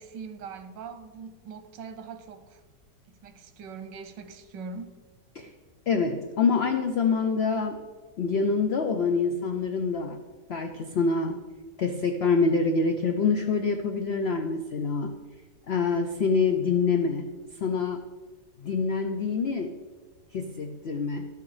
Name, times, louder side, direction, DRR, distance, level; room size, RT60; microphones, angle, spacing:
voice 1, 0.0-2.6 3.1-5.0, right 5 dB, 85° right, 9 dB, 1.5 m, -42 dB
voice 2, 5.9-7.8 8.2-10.2 10.5-11.4 11.8-15.1 15.7-17.3 17.6-18.0 18.6-19.8 20.3-21.3, left 4 dB, 85° left, 6 dB, 0.5 m, -26 dB
12.0 x 6.8 x 4.8 m, 1.4 s
omnidirectional pair, 1.9 m